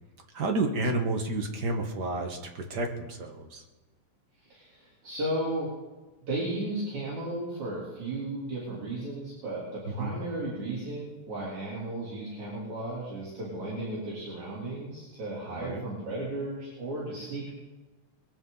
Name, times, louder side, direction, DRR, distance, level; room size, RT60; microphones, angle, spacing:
voice 1, 0.3-3.6 9.8-10.1 15.5-15.8, right 2 dB, 45° right, 3 dB, 1.4 m, -31 dB
voice 2, 4.4-5.7 6.2-17.5, right 1 dB, 65° right, -7 dB, 4.8 m, -35 dB
21.5 x 14.0 x 4.0 m, 1.2 s
omnidirectional pair, 3.6 m